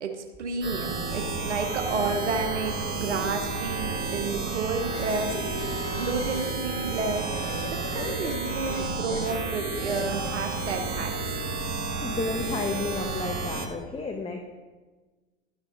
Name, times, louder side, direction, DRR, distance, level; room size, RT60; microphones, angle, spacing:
voice 1, 0.0-7.3 7.6-11.4, right 4 dB, 90° right, 4 dB, 1.0 m, -31 dB
sound 1, 0.6-13.7, right 4 dB, 30° right, 1.9 m, -31 dB
sound 2, 4.9-6.6 7.2-9.4 9.9-10.4, left 8 dB, 55° left, 1.0 m, -40 dB
voice 2, 11.9-14.4, left 3 dB, 15° left, 3 dB, 1.0 m, -32 dB
12.0 x 5.7 x 5.1 m, 1.3 s
hypercardioid pair, 95°, 34 cm